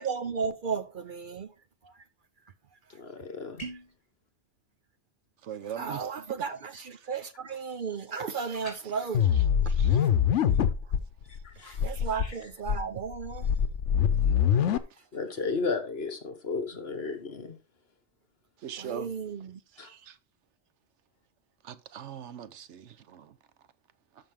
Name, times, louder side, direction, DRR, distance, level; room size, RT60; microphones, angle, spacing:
voice 1, 0.0-1.5 1.8-1.9 3.7-3.8 5.8-9.2 9.9-10.1 11.6-13.5 18.7-19.6, right 5 dB, 55° right, 0.7 m, -34 dB
voice 2, 2.9-3.6 11.4-11.8 15.1-17.6 19.8-19.9, left 4 dB, 60° left, 1.6 m, -33 dB
sound 1, 3.6-4.0 8.5-8.8, right 2 dB, 30° left, 3.0 m, -40 dB
voice 3, 5.4-6.1 8.5-8.6 9.7-9.9 18.6-19.1 19.8-20.1 21.6-23.3, right 9 dB, 80° right, 1.0 m, -40 dB
sound 2, 9.1-11.0 11.4-11.5 11.7-12.3 12.7-14.8, left 8 dB, 85° left, 1.1 m, -24 dB
13.0 x 6.0 x 3.6 m
omnidirectional pair, 1.2 m